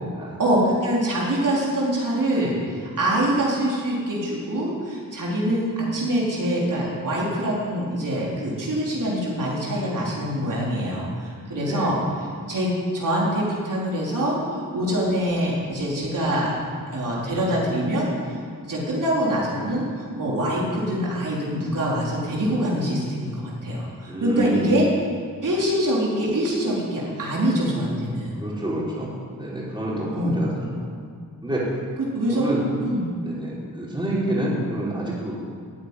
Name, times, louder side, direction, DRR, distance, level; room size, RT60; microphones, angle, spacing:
voice 1, 0.4-12.0 12.5-16.5 16.9-18.3 18.6-24.9 25.4-28.3 30.1-30.4 32.1-32.5 32.8-33.0, right 1 dB, 65° right, -5 dB, 4.0 m, -24 dB
voice 2, 11.5-11.9 24.1-24.8 28.4-30.5 30.7-30.9 31.4-31.7 32.3-32.6 33.2-35.3, right 1 dB, 15° right, -6 dB, 4.4 m, -28 dB
14.5 x 10.0 x 9.8 m, 2.1 s
wide cardioid pair, 155°, 35 cm